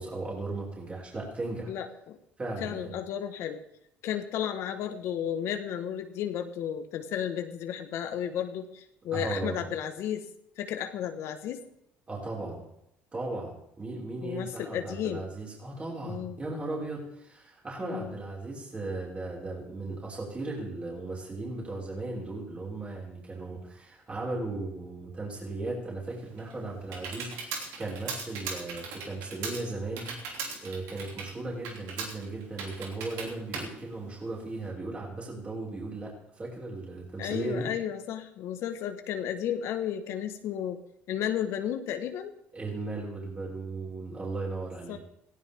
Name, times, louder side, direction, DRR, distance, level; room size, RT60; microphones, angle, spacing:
voice 1, 0.0-1.7 2.4-2.9 9.1-9.6 12.1-12.7 13.1-30.1 30.6-37.7 42.5-45.0, right 2 dB, 25° right, -4 dB, 5.6 m, -36 dB
voice 2, 1.6-2.2 2.6-3.6 4.0-10.2 10.6-11.6 14.2-15.3 16.1-16.4 17.8-18.2 37.2-40.8 41.1-42.3 44.9-45.0, left 9 dB, 70° left, 7 dB, 1.5 m, -33 dB
Computer keyboard, 26.1-34.7, right 5 dB, 80° right, 3.0 m, -39 dB
18.0 x 16.5 x 3.7 m, 0.76 s
supercardioid pair, 85°, 5 cm